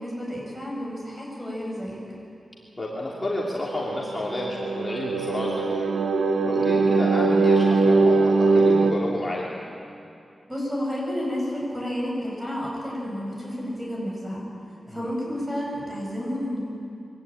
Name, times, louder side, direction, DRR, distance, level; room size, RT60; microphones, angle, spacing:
voice 1, 0.0-2.0 10.5-14.4 14.9-16.6, equal, 15° right, -3 dB, 7.9 m, -31 dB
voice 2, 2.8-5.9 6.4-9.5 14.8-15.1, left 1 dB, 20° left, -5 dB, 3.0 m, -31 dB
sound 1, 3.9-8.9, right 3 dB, 75° right, 1.1 m, -21 dB
24.0 x 17.0 x 9.1 m, 2.6 s
wide cardioid pair, 110°, 0 cm